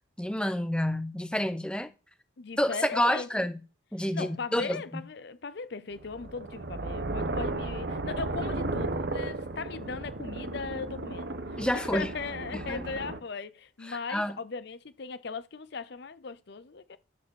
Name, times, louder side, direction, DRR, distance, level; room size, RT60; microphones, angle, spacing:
voice 1, 0.2-1.9 2.6-3.6 3.9-4.8 11.6-12.1 12.5-12.8 13.9-14.4, equal, 5° left, 0.8 m, -29 dB
voice 2, 2.4-3.5 4.1-17.0, left 4 dB, 55° left, 0.6 m, -38 dB
sound 1, 6.0-13.2, right 2 dB, 55° right, 0.9 m, -34 dB
11.5 x 4.9 x 7.0 m
head